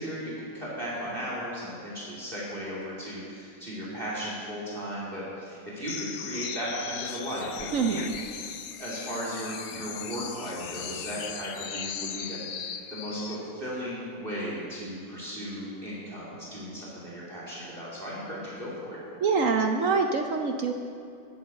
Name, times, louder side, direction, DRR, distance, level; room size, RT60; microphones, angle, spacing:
voice 1, 0.0-8.1 8.8-19.0, equal, 30° right, -6 dB, 2.8 m, -36 dB
sound 1, 5.9-13.4, left 8 dB, 70° left, 0.6 m, -38 dB
voice 2, 7.7-8.1 19.2-20.7, right 4 dB, 65° right, 5 dB, 0.8 m, -25 dB
10.5 x 9.3 x 7.4 m, 2.5 s
omnidirectional pair, 2.0 m